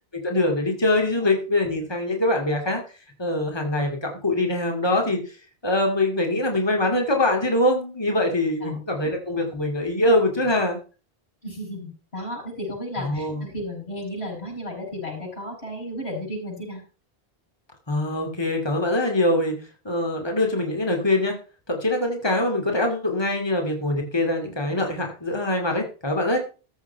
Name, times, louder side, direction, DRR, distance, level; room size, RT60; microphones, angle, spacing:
voice 1, 0.2-2.8 3.2-5.4 5.6-10.8 13.0-13.4 17.9-19.5 19.8-21.4 21.7-26.4, left 1 dB, 25° left, 2 dB, 2.5 m, -23 dB
voice 2, 8.6-9.0 11.4-16.8, left 1 dB, 85° left, -1 dB, 7.2 m, -33 dB
14.5 x 7.1 x 5.6 m, 0.35 s
omnidirectional pair, 1.0 m